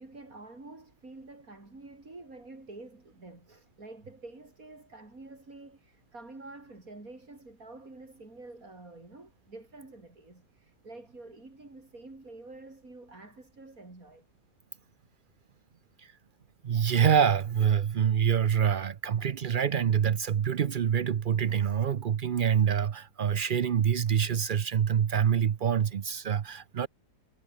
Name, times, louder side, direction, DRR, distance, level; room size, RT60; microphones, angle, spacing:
voice 1, 0.0-14.3, right 2 dB, 55° right, 5.5 m, -48 dB
voice 2, 16.6-26.9, right 8 dB, 85° right, 0.4 m, -26 dB
omnidirectional pair, 1.8 m